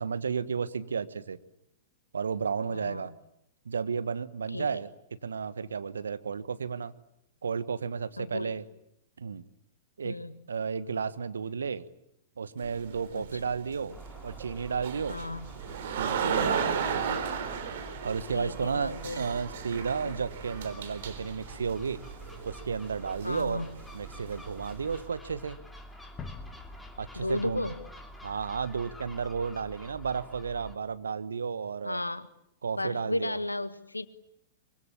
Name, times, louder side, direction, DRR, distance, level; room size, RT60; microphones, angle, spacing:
voice 1, 0.0-1.4 2.1-3.1 3.6-4.9 5.2-6.9 7.4-8.6 9.2-9.4 10.0-10.2 10.5-11.9 12.4-14.0 14.2-15.2 16.0-17.2 18.0-22.0 22.4-23.6 23.9-25.6 27.0-27.7 28.2-32.0 32.6-33.4, right 6 dB, 70° right, 14 dB, 1.3 m, -33 dB
voice 2, 2.6-3.1 4.5-4.8 8.2-8.6 10.0-10.4 13.1-13.4 15.1-15.5 16.2-16.6 18.3-19.2 20.0-20.2 23.2-23.7 27.1-27.9 31.8-32.3 32.7-34.1, left 2 dB, 85° left, 14 dB, 1.5 m, -35 dB
sound 1, 12.6-25.0, right 7 dB, 55° right, 4.0 m, -36 dB
Gull seagull, 13.9-30.8, equal, 5° left, 2.9 m, -48 dB
sound 2, 26.2-29.0, left 4 dB, 20° left, 2.1 m, -46 dB
24.5 x 24.0 x 8.8 m, 0.78 s
figure-of-eight pair, 105°, 0 cm